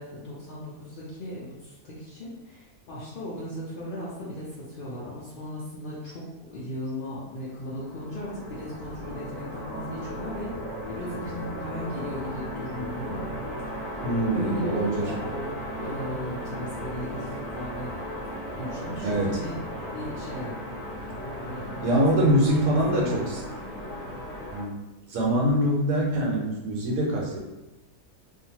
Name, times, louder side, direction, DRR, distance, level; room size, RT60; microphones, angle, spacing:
voice 1, 0.0-6.2 6.5-10.6 10.9-13.2 13.8-14.0 14.3-18.0 18.6-19.6 19.9-20.5 21.0-21.1 21.4-21.8 22.1-23.3, left 1 dB, 75° left, -7 dB, 0.4 m, -37 dB
sound 1, 7.4-24.6, equal, 45° left, 0.9 m, -36 dB
voice 2, 14.0-15.1 19.0-19.4 21.8-23.4 24.5-24.7 25.1-27.4, right 1 dB, 70° right, -2 dB, 1.2 m, -24 dB
2.7 x 2.5 x 2.7 m, 1.0 s
omnidirectional pair, 1.7 m